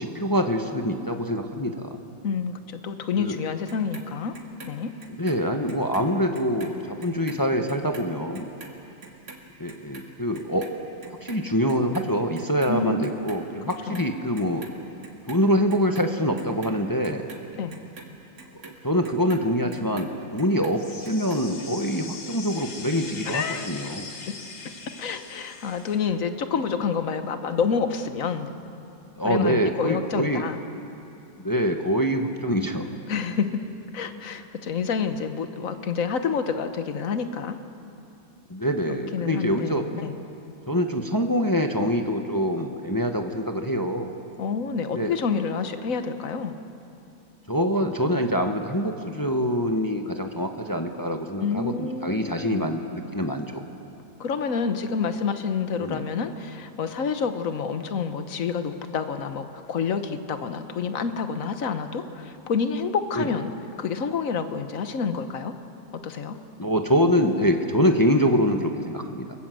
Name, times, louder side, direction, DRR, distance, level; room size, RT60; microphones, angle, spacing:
voice 1, 0.0-2.0 3.2-3.4 5.2-8.5 9.6-10.7 11.1-14.6 15.3-17.2 18.8-24.1 29.2-30.5 31.4-32.9 38.5-39.8 40.7-44.1 44.9-45.1 47.5-53.6 55.8-56.0 63.2-63.3 66.6-69.2, equal, 15° left, 4 dB, 0.8 m, -25 dB
voice 2, 2.2-4.3 4.7-4.9 12.7-13.1 13.9-14.1 17.6-17.7 23.2-23.7 25.0-28.5 29.2-30.6 33.1-33.6 33.9-37.6 38.9-40.2 44.4-46.5 51.4-52.7 54.2-63.5 63.8-65.5 65.9-66.4, left 6 dB, 50° left, 8 dB, 1.4 m, -28 dB
Clock, 3.7-6.1 6.3-12.8 13.0-14.1 14.4-15.4 15.7-20.1 20.4-21.4 21.7-21.8, right 4 dB, 55° right, 2.6 m, -45 dB
sound 1, 20.8-26.0, left 4 dB, 70° left, 2.9 m, -41 dB
28.5 x 19.5 x 7.8 m, 2.8 s
omnidirectional pair, 2.1 m